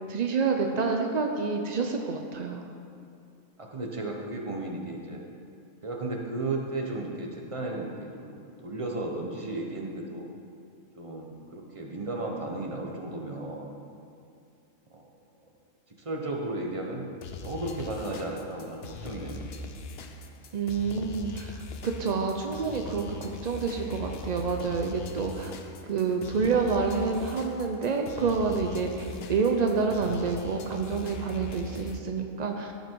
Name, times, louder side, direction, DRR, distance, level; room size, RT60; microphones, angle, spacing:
voice 1, 0.1-2.6 20.5-25.5 25.8-32.7, right 4 dB, 65° right, 3 dB, 0.4 m, -28 dB
voice 2, 3.6-5.2 5.8-10.3 11.0-13.8 14.9-15.1 15.4-15.5 15.9-17.1 17.4-19.5 29.0-29.2, right 2 dB, 25° right, 0 dB, 1.0 m, -34 dB
sound 1, 17.2-32.0, left 3 dB, 55° left, 0.8 m, -41 dB
14.0 x 5.5 x 4.6 m, 2.5 s
omnidirectional pair, 1.5 m